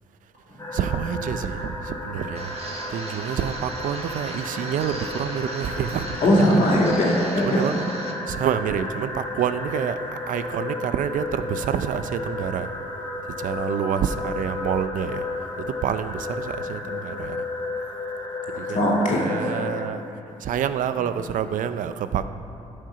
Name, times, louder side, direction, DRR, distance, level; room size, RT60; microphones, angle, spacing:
sound 1, 0.6-19.8, left 2 dB, 25° left, 2.0 m, -33 dB
voice 1, 0.7-2.5 2.9-6.2 7.4-7.8 8.3-10.0 10.3-12.7 13.4-15.2 15.6-17.4 18.6-20.0 20.4-22.2, right 8 dB, 70° right, 11 dB, 0.5 m, -27 dB
sound 2, 2.3-8.1, right 2 dB, 45° right, 1.4 m, -38 dB
voice 2, 6.2-7.7 18.7-19.5, equal, 65° left, -3 dB, 2.4 m, -20 dB
11.5 x 6.5 x 5.7 m, 2.8 s
supercardioid pair, 65°, 14 cm